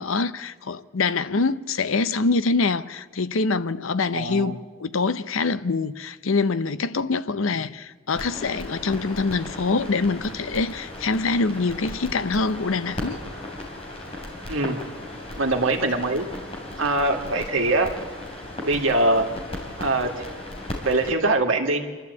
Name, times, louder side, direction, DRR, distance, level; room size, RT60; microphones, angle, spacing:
voice 1, 0.0-13.2, left 4 dB, 75° left, 0.7 m, -25 dB
voice 2, 4.1-4.6 14.5-14.8 15.4-16.3 16.8-17.9 18.6-19.3 19.8-20.1 20.8-21.8, right 2 dB, 70° right, 2.1 m, -22 dB
sound 1, 8.1-21.1, left 1 dB, 30° left, 3.6 m, -36 dB
27.0 x 12.5 x 8.3 m
head